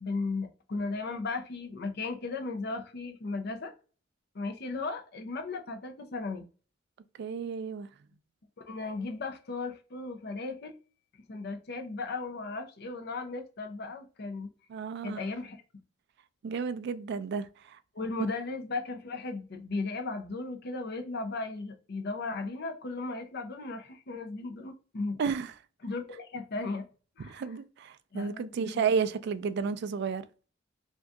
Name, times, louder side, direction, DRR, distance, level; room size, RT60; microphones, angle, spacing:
voice 1, 0.0-3.7 4.3-6.4 8.6-10.8 11.3-14.5 15.0-15.6 17.9-25.2 25.8-26.9 27.2-27.4 28.1-28.8, left 3 dB, 55° left, 0.6 m, -36 dB
voice 2, 7.2-7.9 14.7-15.2 16.4-17.8 25.2-25.5 27.2-30.3, right 6 dB, 60° right, 0.3 m, -32 dB
2.7 x 2.3 x 3.4 m
head